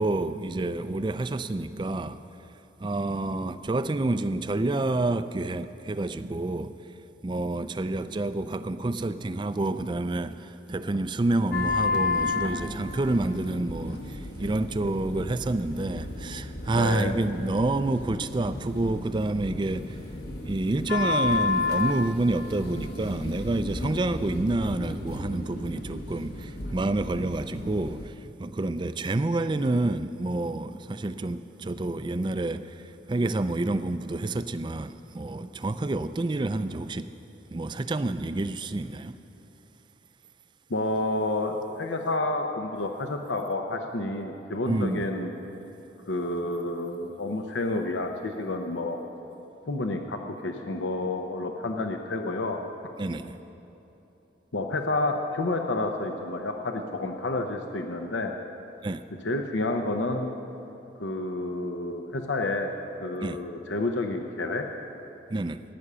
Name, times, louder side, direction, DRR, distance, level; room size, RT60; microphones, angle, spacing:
voice 1, 0.0-2.2 2.8-6.8 7.2-20.0 20.4-37.1 37.5-39.2 44.7-45.0 53.0-53.4 58.8-59.0 63.2-63.4 65.3-65.6, right 2 dB, 25° right, 12 dB, 0.4 m, -28 dB
sound 1, 11.5-28.1, left 3 dB, 55° left, 1.1 m, -32 dB
voice 2, 16.7-17.1 40.7-45.3 46.1-49.0 49.7-52.9 54.5-58.4 59.2-60.3 61.0-62.7 63.0-64.7, left 2 dB, 80° left, 4 dB, 0.8 m, -29 dB
15.5 x 9.9 x 6.8 m, 3.0 s
head